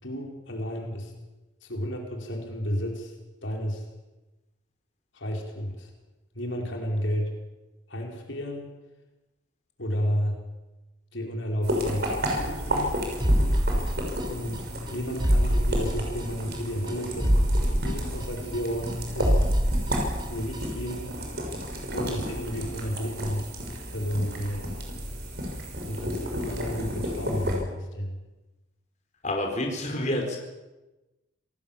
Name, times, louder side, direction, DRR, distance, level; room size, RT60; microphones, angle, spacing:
voice 1, 0.0-1.1 1.6-3.1 3.4-3.8 5.1-5.9 6.3-7.3 7.9-8.7 9.8-10.4 11.1-13.0 14.2-17.3 17.8-19.5 20.3-21.1 21.9-23.4 23.9-24.8 25.8-28.2, equal, 70° left, 1 dB, 4.8 m, -32 dB
sound 1, 11.6-27.6, equal, 55° right, 6.1 m, -32 dB
sound 2, 13.2-14.6 14.9-15.0 15.2-16.6 16.9-17.0 17.2-18.9 19.2-20.6 20.9-21.0, equal, 20° right, 1.7 m, -25 dB
voice 2, 29.2-30.4, left 1 dB, 35° left, 1 dB, 4.7 m, -28 dB
27.0 x 19.0 x 7.3 m, 1.1 s
head